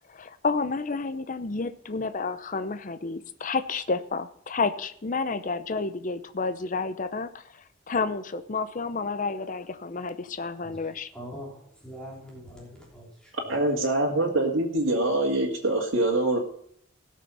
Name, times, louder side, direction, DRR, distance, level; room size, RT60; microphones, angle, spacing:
voice 1, 0.1-7.4 7.9-11.1, left 4 dB, 40° left, 11 dB, 0.7 m, -30 dB
voice 2, 11.1-13.6, equal, 5° left, -4 dB, 3.3 m, -43 dB
voice 3, 13.5-16.4, right 2 dB, 90° right, -3 dB, 2.0 m, -24 dB
17.0 x 6.6 x 5.4 m, 0.65 s
head